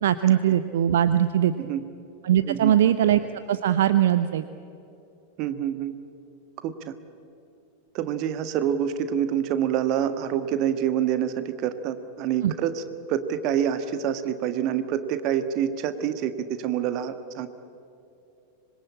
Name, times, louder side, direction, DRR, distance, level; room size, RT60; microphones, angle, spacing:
voice 1, 0.0-1.5 2.2-3.2 3.5-4.5 12.4-12.5, right 11 dB, 60° right, 12 dB, 0.7 m, -21 dB
voice 2, 2.4-2.8 5.4-5.9 6.6-6.9 7.9-12.8 13.1-17.5, right 9 dB, 40° right, 10 dB, 1.6 m, -27 dB
25.5 x 22.0 x 8.5 m, 2.8 s
figure-of-eight pair, 90°, 0 cm